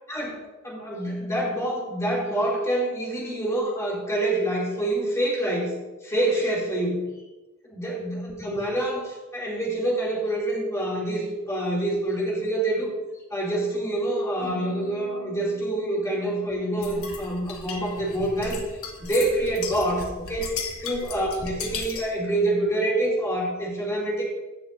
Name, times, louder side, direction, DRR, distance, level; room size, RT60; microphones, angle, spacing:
voice 1, 0.1-5.7 6.0-7.0 7.7-12.9 13.3-18.6 19.0-20.5 20.8-24.2, right 1 dB, 15° left, -5 dB, 2.6 m, -26 dB
sound 1, 14.4-18.7, left 1 dB, 55° left, 2.5 m, -45 dB
sound 2, 16.8-22.2, left 5 dB, 80° left, 1.3 m, -36 dB
15.5 x 6.5 x 2.6 m, 1.1 s
head